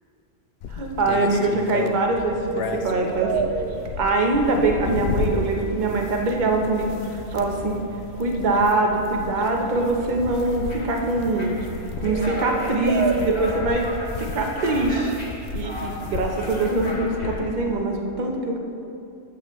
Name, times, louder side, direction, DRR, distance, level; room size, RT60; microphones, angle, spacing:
sound 1, 0.6-17.8, left 5 dB, 60° left, 0.7 m, -34 dB
voice 1, 0.7-3.3 4.0-7.8 8.2-11.6 12.0-13.8 14.2-15.2 15.5-18.6, right 2 dB, 40° right, 1 dB, 1.0 m, -23 dB
sound 2, 1.4-1.9 2.2-2.7 3.0-17.3, left 1 dB, 35° left, 1.7 m, -38 dB
sound 3, 2.1-16.2, right 5 dB, 60° right, 0.7 m, -34 dB
13.5 x 7.2 x 3.2 m, 2.6 s
omnidirectional pair, 1.3 m